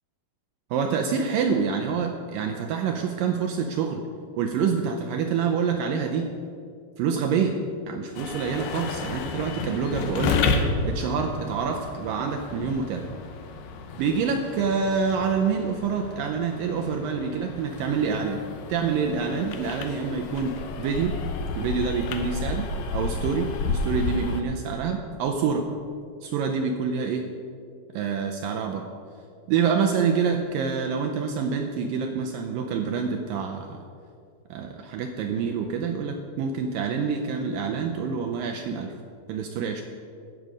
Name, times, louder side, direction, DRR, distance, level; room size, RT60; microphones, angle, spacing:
voice 1, 0.7-4.0 4.4-6.3 7.0-7.6 7.9-10.5 10.8-13.1 14.0-18.4 18.7-21.2 21.6-25.7 26.2-27.3 27.9-28.9 29.5-33.8 34.5-38.9 39.3-39.8, right 6 dB, 80° right, 3 dB, 2.0 m, -27 dB
sound 1, 8.2-24.4, left 4 dB, 75° left, 2.2 m, -31 dB
16.0 x 6.8 x 5.1 m, 2.3 s
omnidirectional pair, 4.5 m